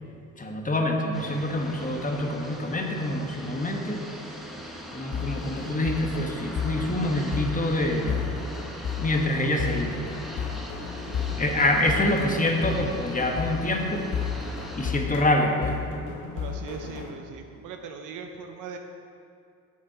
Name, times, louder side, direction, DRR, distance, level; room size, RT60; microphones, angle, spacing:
voice 1, 0.4-4.0 4.9-8.1 9.0-10.0 11.4-14.1 14.7-15.8, left 1 dB, 25° left, 2 dB, 1.2 m, -26 dB
sound 1, 1.1-15.0, equal, ahead, 1.0 m, -41 dB
sound 2, 5.1-17.1, left 6 dB, 70° left, 0.9 m, -33 dB
voice 2, 11.0-11.3 12.6-13.0 16.3-18.8, right 6 dB, 85° right, 5 dB, 0.6 m, -40 dB
7.3 x 6.3 x 4.7 m, 2.5 s
cardioid pair, 75°, 30 cm